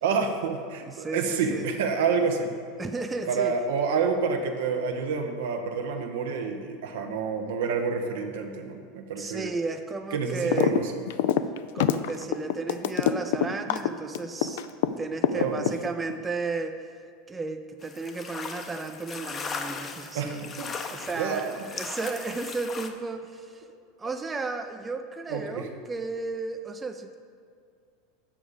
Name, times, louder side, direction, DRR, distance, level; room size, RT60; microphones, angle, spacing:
voice 1, 0.0-2.6 3.3-9.5 10.1-11.0 15.3-15.7 20.1-20.7 21.2-21.6 24.0-24.1 25.3-25.7, right 5 dB, 80° right, 4 dB, 0.9 m, -28 dB
voice 2, 0.9-1.7 2.8-3.5 9.2-10.8 11.7-14.6 15.0-16.9 17.3-20.5 20.9-23.6 24.0-27.1, right 3 dB, 15° right, 6 dB, 0.5 m, -34 dB
sound 1, 10.5-10.8 11.1-14.9 15.2-16.1, left 11 dB, 75° left, 0.3 m, -24 dB
sound 2, 17.8-22.9, left 5 dB, 30° left, 0.7 m, -38 dB
7.2 x 4.9 x 6.8 m, 2.3 s
supercardioid pair, 110°, 0 cm